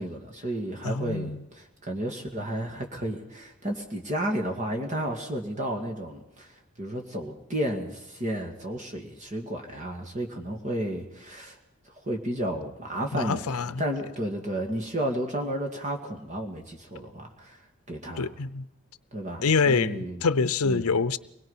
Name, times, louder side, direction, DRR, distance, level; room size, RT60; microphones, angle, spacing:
voice 1, 0.0-11.6 11.9-17.6 17.9-18.3 19.1-20.2 20.6-20.9, right 1 dB, 35° right, 2 dB, 2.1 m, -32 dB
voice 2, 0.8-1.4 13.1-13.8 18.2-18.6 19.4-21.2, left 4 dB, 80° left, 15 dB, 0.7 m, -25 dB
24.5 x 21.5 x 5.6 m, 0.86 s
head